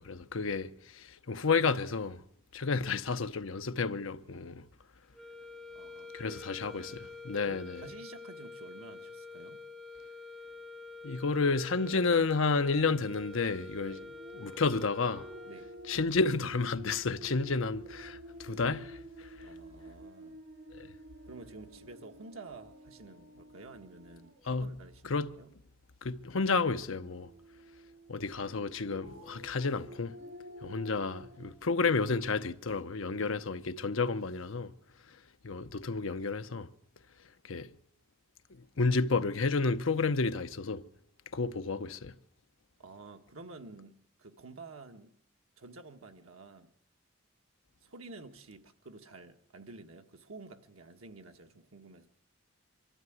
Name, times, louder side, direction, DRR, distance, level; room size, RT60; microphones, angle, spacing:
voice 1, 0.0-2.2 2.5-4.6 6.1-7.8 11.0-14.0 14.3-15.3 15.9-19.3 20.8-20.9 24.5-24.7 25.1-25.3 26.0-27.3 28.1-30.1 30.6-34.7 35.4-36.7 37.4-37.7 38.8-40.8 41.3-42.1, left 4 dB, 75° left, 0.8 m, -31 dB
sound 1, 5.1-16.0, left 4 dB, ahead, 1.0 m, -47 dB
voice 2, 5.7-7.0 7.4-9.6 13.8-14.2 15.4-15.7 19.3-20.4 21.2-25.5 42.8-45.1 45.6-46.7 47.8-52.1, right 3 dB, 85° right, 1.5 m, -50 dB
sound 2, 13.7-24.9 26.2-31.5, right 1 dB, 60° right, 5.5 m, -51 dB
24.5 x 12.5 x 9.3 m
head